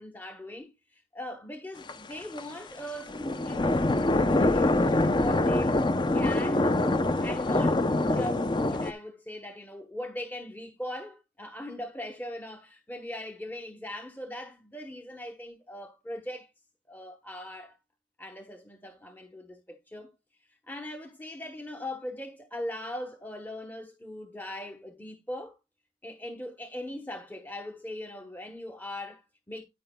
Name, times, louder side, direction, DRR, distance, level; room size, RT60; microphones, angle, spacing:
voice 1, 0.0-5.8 6.1-16.5 16.9-17.8 18.2-20.1 20.7-25.6 26.0-29.6, left 1 dB, 10° left, 0.9 m, -39 dB
sound 1, 1.9-2.4 3.1-8.9, left 2 dB, 25° left, 0.5 m, -25 dB
9.9 x 9.4 x 2.2 m
head